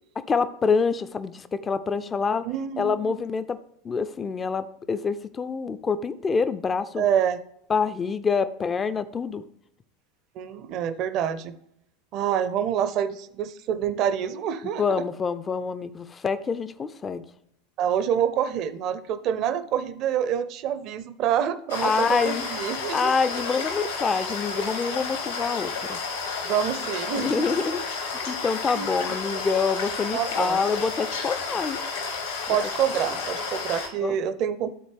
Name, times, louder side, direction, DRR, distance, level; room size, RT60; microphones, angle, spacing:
voice 1, 0.3-2.4 2.8-3.6 3.8-7.1 7.7-9.4 14.8-17.2 21.8-22.4 22.9-26.0 27.1-31.8 32.5-32.6 34.0-34.2, left 5 dB, 20° left, 12 dB, 0.4 m, -26 dB
voice 2, 2.4-3.2 7.0-7.4 10.4-11.5 12.1-15.0 17.8-23.1 26.4-27.6 28.7-29.0 30.1-30.7 32.5-34.7, right 9 dB, 45° right, 12 dB, 0.6 m, -27 dB
sound 1, 21.7-33.9, left 4 dB, 75° left, 1.6 m, -31 dB
12.5 x 4.2 x 3.4 m, 0.76 s
figure-of-eight pair, 80°, 0 cm